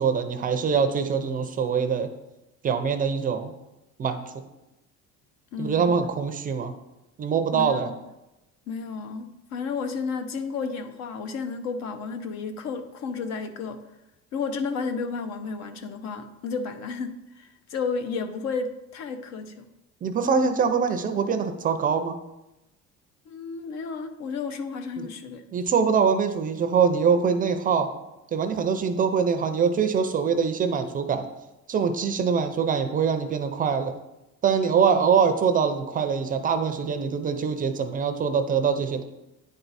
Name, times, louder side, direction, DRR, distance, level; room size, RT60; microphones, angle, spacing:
voice 1, 0.0-2.1 2.6-3.5 4.0-4.4 5.6-6.7 7.2-7.9 20.0-22.2 25.0-25.1 25.5-27.9 28.3-31.3 31.7-33.9 34.4-39.0, right 6 dB, 30° right, 8 dB, 0.5 m, -24 dB
voice 2, 5.5-5.9 7.5-8.0 8.7-13.9 14.3-19.7 23.3-25.4, left 5 dB, 60° left, 8 dB, 0.8 m, -32 dB
9.5 x 4.5 x 4.1 m, 0.95 s
cardioid pair, 160°, 30 cm